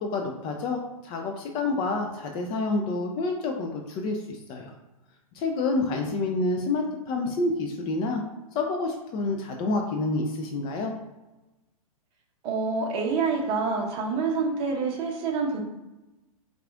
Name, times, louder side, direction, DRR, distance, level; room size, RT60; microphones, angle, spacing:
voice 1, 0.0-4.7 5.3-8.2 8.5-10.9, left 3 dB, 25° left, 3 dB, 0.4 m, -28 dB
voice 2, 12.4-15.6, right 4 dB, 30° right, 0 dB, 0.9 m, -27 dB
4.7 x 2.4 x 3.6 m, 1.0 s
figure-of-eight pair, 110°, 19 cm